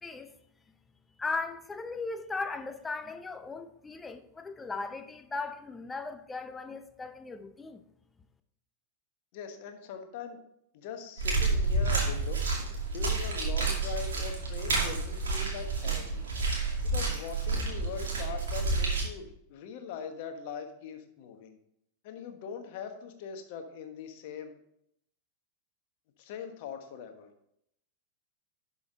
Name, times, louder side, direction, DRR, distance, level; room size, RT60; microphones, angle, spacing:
voice 1, 0.0-0.3 1.2-7.8, left 3 dB, 10° left, 0.7 m, -37 dB
voice 2, 9.3-10.4 10.7-12.4 12.9-16.2 16.8-21.6 22.0-24.6 26.2-27.3, left 7 dB, 50° left, 1.3 m, -41 dB
sound 1, 11.2-19.0, right 3 dB, 65° right, 2.5 m, -30 dB
11.5 x 5.8 x 4.0 m
figure-of-eight pair, 90°, 0 cm